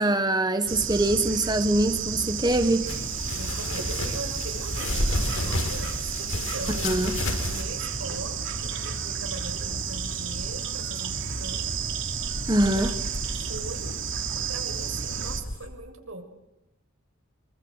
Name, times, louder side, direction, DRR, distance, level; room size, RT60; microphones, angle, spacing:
voice 1, 0.0-2.9 6.8-7.1 12.5-12.9, right 1 dB, 20° right, 1.4 m, -23 dB
Bird / Insect, 0.7-15.4, right 6 dB, 65° right, 3.1 m, -32 dB
sound 1, 2.4-15.7, equal, 50° left, 5.7 m, -39 dB
sound 2, 2.9-7.6, left 2 dB, 75° left, 6.2 m, -32 dB
voice 2, 3.3-7.0 7.4-11.7 12.1-13.0 13.4-13.9 14.5-16.2, right 2 dB, 85° right, 6.9 m, -41 dB
27.0 x 25.5 x 8.1 m
head